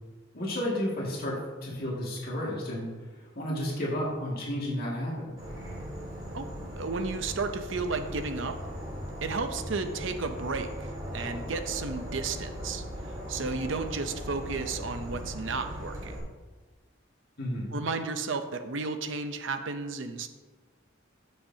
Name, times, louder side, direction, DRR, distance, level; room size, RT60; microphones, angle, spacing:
voice 1, 0.3-2.9 3.3-5.3 17.4-17.7, left 1 dB, 50° left, -5 dB, 2.1 m, -32 dB
Insect / Frog, 5.4-16.2, equal, 20° right, 3.2 m, -39 dB
voice 2, 6.8-8.6 9.2-12.8 13.3-16.2 17.7-20.3, right 4 dB, 65° right, 8 dB, 0.7 m, -33 dB
14.0 x 6.7 x 2.8 m, 1.3 s
head